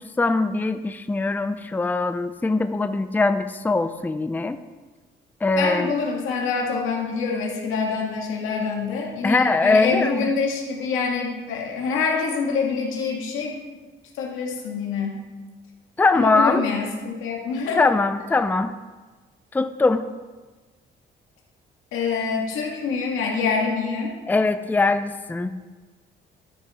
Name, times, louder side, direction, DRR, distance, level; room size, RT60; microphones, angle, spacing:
voice 1, 0.0-4.6 5.4-5.9 9.2-10.3 16.0-16.6 17.8-18.7 19.5-20.1 24.3-25.5, left 3 dB, 10° left, 10 dB, 0.4 m, -21 dB
voice 2, 5.6-13.6 14.1-15.2 16.1-17.8 21.9-24.1, left 5 dB, 90° left, -1 dB, 2.0 m, -25 dB
13.0 x 5.6 x 4.4 m, 1.3 s
cardioid pair, 90°, 20 cm